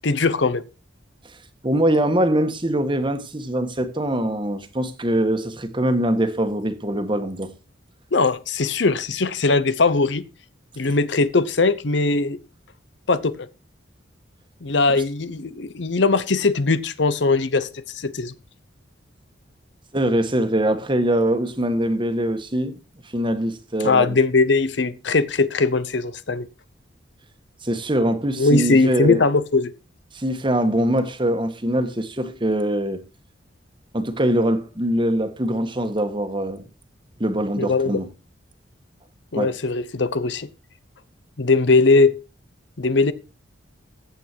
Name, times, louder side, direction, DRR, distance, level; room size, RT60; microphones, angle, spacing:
voice 1, 0.0-0.6 8.1-10.2 10.8-12.4 13.1-13.5 14.6-18.3 23.8-26.5 28.4-29.7 37.6-38.0 39.3-40.5 41.4-42.1 42.8-43.1, left 3 dB, 65° left, 0.8 m, -20 dB
voice 2, 1.6-7.5 19.9-22.8 23.1-24.1 27.6-29.2 30.1-33.0 33.9-36.6 37.2-38.1 39.3-39.6, right 1 dB, 25° right, 1.5 m, -23 dB
15.0 x 8.3 x 4.6 m
head